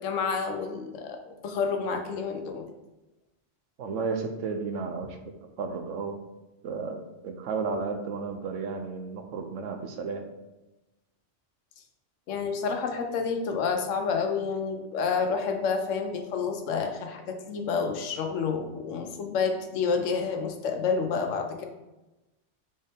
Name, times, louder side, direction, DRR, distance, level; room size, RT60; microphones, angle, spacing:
voice 1, 0.0-2.6 12.3-21.7, left 5 dB, 85° left, 4 dB, 1.0 m, -29 dB
voice 2, 3.8-5.2 5.6-6.2 6.6-10.2, right 4 dB, 80° right, 6 dB, 1.0 m, -33 dB
4.2 x 3.7 x 3.4 m, 1.0 s
omnidirectional pair, 1.3 m